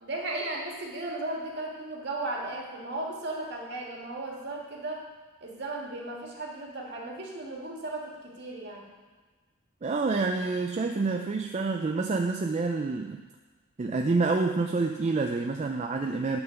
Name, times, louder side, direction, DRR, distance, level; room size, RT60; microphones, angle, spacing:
voice 1, 0.0-5.0 5.4-8.9, right 2 dB, 55° right, -2 dB, 1.7 m, -36 dB
voice 2, 9.8-13.2 13.8-16.4, right 3 dB, 35° right, 4 dB, 0.3 m, -28 dB
9.4 x 3.9 x 6.8 m, 1.4 s
head